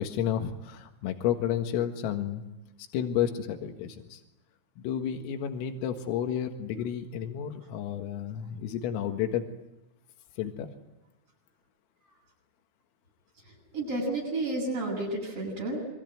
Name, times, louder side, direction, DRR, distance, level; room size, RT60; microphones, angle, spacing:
voice 1, 0.0-2.4 2.9-4.2 4.8-9.4 10.4-10.7, left 9 dB, 90° left, 5 dB, 4.4 m, -31 dB
voice 2, 13.7-15.9, right 2 dB, 25° right, -6 dB, 8.7 m, -31 dB
27.0 x 24.0 x 9.3 m, 0.93 s
omnidirectional pair, 5.9 m